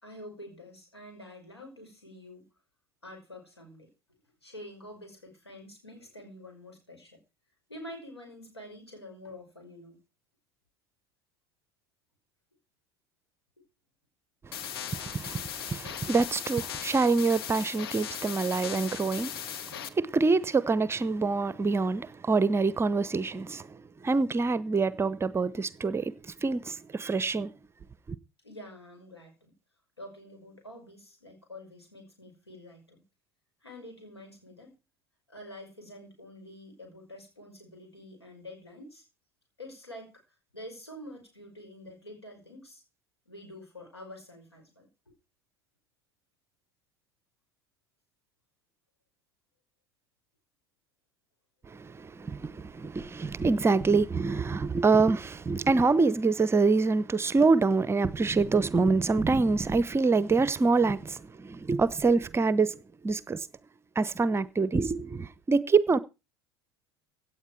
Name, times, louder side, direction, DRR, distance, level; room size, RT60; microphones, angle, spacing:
voice 1, 0.0-2.5 3.0-3.9 4.4-7.2 7.7-10.0 28.4-29.5 30.0-33.0 33.6-34.7 35.3-39.0 39.6-40.2 40.5-42.8 43.3-45.1, left 1 dB, 85° left, 5.5 m, -47 dB
sound 1, 14.5-19.9, left 9 dB, 65° left, 1.1 m, -38 dB
voice 2, 14.5-27.5 51.7-62.8 63.0-63.5 64.0-66.0, right 4 dB, 20° right, 0.8 m, -26 dB
16.5 x 9.3 x 4.7 m
figure-of-eight pair, 70°, 13 cm